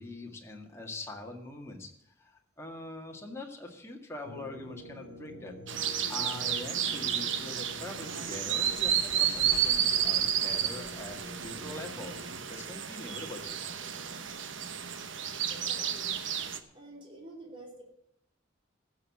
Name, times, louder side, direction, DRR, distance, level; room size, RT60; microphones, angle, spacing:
voice 1, 0.0-5.8 6.1-12.2 12.5-13.6, left 2 dB, 15° left, 1 dB, 1.9 m, -43 dB
sound 1, 4.2-12.4, left 1 dB, 60° right, 2.0 m, -47 dB
sound 2, 5.7-16.6, right 9 dB, 75° right, 1.0 m, -31 dB
voice 2, 15.5-16.1 16.7-17.8, right 1 dB, 25° right, 0 dB, 3.1 m, -48 dB
15.0 x 6.6 x 7.3 m, 0.78 s
head